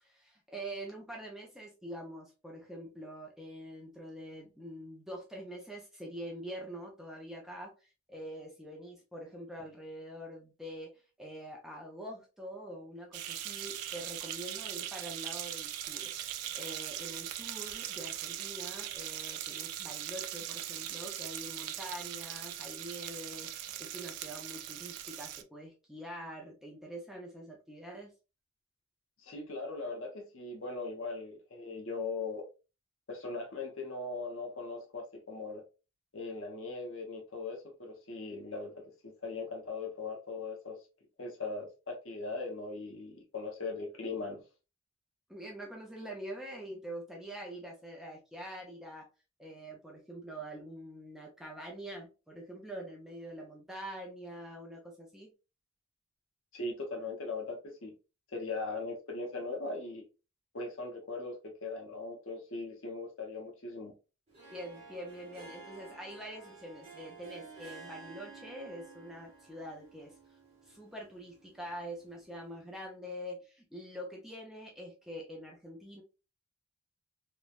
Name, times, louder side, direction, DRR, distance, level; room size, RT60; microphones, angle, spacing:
voice 1, 0.0-28.1 45.3-49.1 49.4-55.3 64.5-70.4 70.6-76.0, right 1 dB, ahead, 0.5 m, -45 dB
sound 1, 13.1-25.4, right 11 dB, 85° right, 0.4 m, -40 dB
voice 2, 29.2-32.4 33.1-35.6 36.1-40.8 41.2-44.4 56.5-57.9 58.3-60.0 60.5-63.9, left 3 dB, 60° left, 0.8 m, -39 dB
Harp, 64.3-72.5, right 4 dB, 25° right, 0.9 m, -52 dB
3.0 x 2.2 x 2.4 m
head